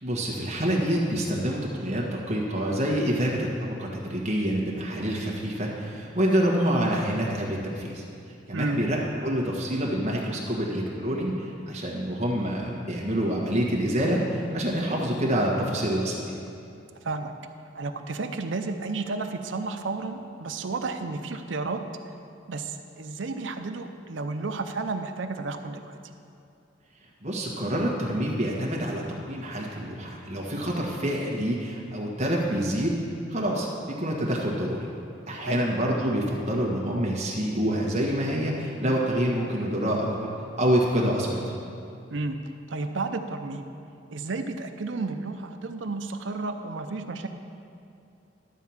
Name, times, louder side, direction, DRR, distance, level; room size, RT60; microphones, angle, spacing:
voice 1, 0.0-8.0 8.5-16.3 27.2-33.0 33.3-34.8 35.3-40.3 40.6-41.4, equal, 35° right, -3 dB, 1.6 m, -27 dB
voice 2, 17.7-21.8 22.5-25.9 35.4-35.6 42.1-42.4 42.7-43.7 44.1-47.3, right 3 dB, 90° right, 7 dB, 0.6 m, -32 dB
12.0 x 4.6 x 7.2 m, 2.6 s
head